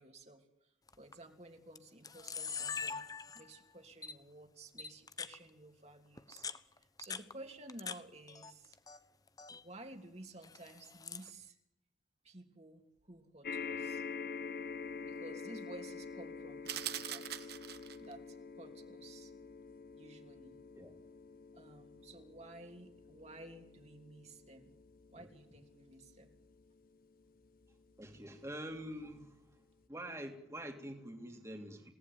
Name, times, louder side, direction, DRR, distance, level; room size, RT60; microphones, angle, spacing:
voice 1, 0.0-3.1 3.3-6.5 6.8-8.8 9.5-11.6 12.2-14.0 15.0-17.5 18.0-19.3 20.0-20.6 21.5-24.8 25.1-26.4, right 2 dB, 35° right, 3 dB, 3.2 m, -54 dB
Camera, 0.9-1.1 1.8-1.9 2.0-3.6 4.0-4.1 4.8-5.4 6.2-8.0 8.3-9.0 9.3-9.6 10.4-11.3, left 6 dB, 20° left, 1.1 m, -43 dB
sound 1, 13.4-28.0 28.7-28.8 29.1-29.2, left 5 dB, 45° left, 1.4 m, -47 dB
sound 2, 16.7-18.1, right 11 dB, 55° right, 1.6 m, -41 dB
voice 2, 28.0-29.4 29.9-31.9, right 1 dB, 15° right, 3 dB, 3.0 m, -46 dB
28.0 x 18.5 x 9.5 m, 0.82 s
head